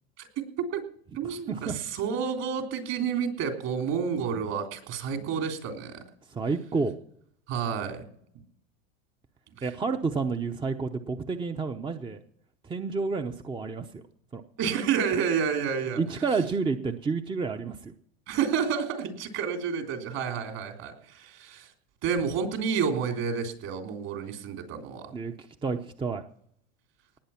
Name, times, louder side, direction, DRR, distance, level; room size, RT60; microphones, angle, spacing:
voice 1, 0.2-0.8 1.1-6.0 7.5-8.0 9.5-9.7 14.6-16.2 18.3-21.7 22.0-25.1, right 6 dB, 55° right, 4 dB, 3.6 m, -30 dB
voice 2, 1.2-1.8 6.3-7.0 9.6-12.2 12.6-14.0 14.3-14.4 16.0-17.9 25.1-25.3 25.6-26.2, right 4 dB, 15° right, 7 dB, 0.7 m, -30 dB
19.0 x 7.9 x 5.8 m, 0.68 s
supercardioid pair, 120°, 31 cm